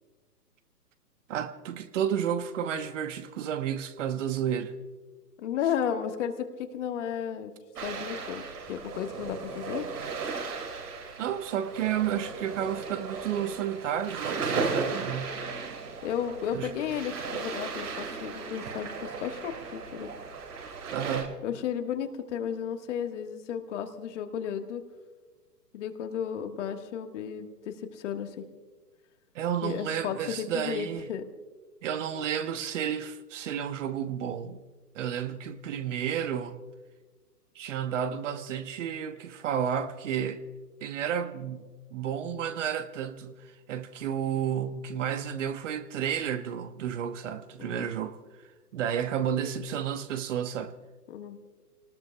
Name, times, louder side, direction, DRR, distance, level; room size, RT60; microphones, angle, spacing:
voice 1, 1.3-4.7 11.2-15.4 16.5-16.7 20.9-21.3 29.3-31.1 31.8-34.6 34.9-36.6 37.5-40.4 40.8-43.4 43.7-48.2 48.7-50.7, right 9 dB, 50° right, 1.1 m, -31 dB
voice 2, 5.4-7.5 7.8-9.9 14.5-14.7 16.0-20.1 21.4-24.8 25.7-28.4 29.6-31.3 47.6-47.9 51.1-51.4, left 8 dB, 45° left, 1.5 m, -33 dB
sound 1, 7.8-21.2, right 4 dB, 70° right, 5.9 m, -36 dB
28.5 x 19.0 x 2.3 m
hypercardioid pair, 130°, 48 cm